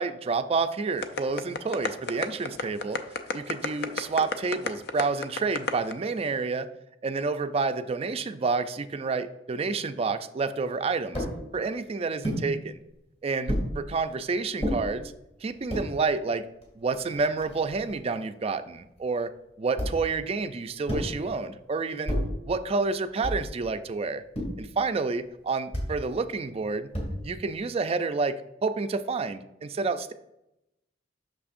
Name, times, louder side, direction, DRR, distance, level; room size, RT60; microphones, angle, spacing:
voice 1, 0.0-3.0 3.3-6.7 7.0-11.3 11.5-12.8 13.2-15.1 15.4-16.4 16.8-19.3 19.6-22.1 22.5-24.2 24.6-26.9 27.2-28.4 28.6-30.1, right 4 dB, 35° right, 10 dB, 0.4 m, -29 dB
sound 1, 1.0-5.9, left 4 dB, 60° left, 0.5 m, -30 dB
sound 2, 11.1-11.4 12.2-12.5 13.5-13.7 14.6-14.8 15.5-15.9 16.6-16.7 16.9-18.0 19.8-20.1 20.9-21.2 22.1-22.4 23.2-23.6 24.3-24.7 25.7-26.0 26.9-27.4, equal, 35° left, 2.2 m, -30 dB
8.5 x 6.2 x 2.5 m, 0.87 s
head